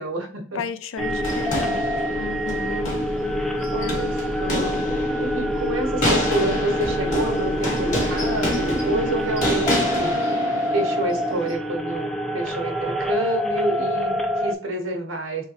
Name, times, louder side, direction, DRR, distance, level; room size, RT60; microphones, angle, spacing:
voice 1, 0.0-0.6 3.7-4.1 4.4-4.8 5.2-10.1 10.7-15.5, right 2 dB, 85° right, 1.0 m, -28 dB
voice 2, 0.5-2.9 3.8-4.1, left 6 dB, 75° left, 0.4 m, -34 dB
sound 1, 1.0-14.5, left 1 dB, ahead, 0.3 m, -26 dB
sound 2, 1.2-11.5, equal, 40° left, 1.6 m, -28 dB
3.6 x 3.3 x 2.9 m
head